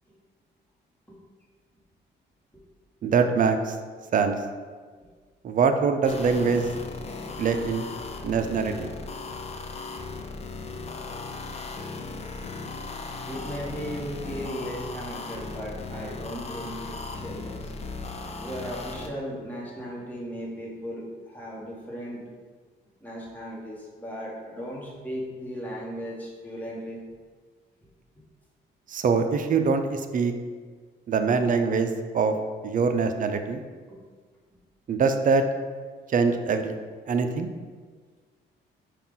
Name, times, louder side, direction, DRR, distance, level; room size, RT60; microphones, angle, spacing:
voice 1, 3.0-3.8 4.1-4.4 5.4-6.7 7.4-7.8 8.2-8.9 28.9-30.3 31.1-31.9 32.1-32.3 32.6-33.6 34.9-35.4 36.1-36.7 37.1-37.5, right 5 dB, 45° right, 7 dB, 0.4 m, -23 dB
sound 1, 6.0-19.1, left 3 dB, 35° left, 0.5 m, -37 dB
voice 2, 13.2-17.7 18.4-22.2 23.0-27.0 31.4-31.5 33.9-34.0, equal, 10° left, -5 dB, 1.3 m, -37 dB
5.5 x 2.4 x 3.7 m, 1.6 s
cardioid pair, 90°, 20 cm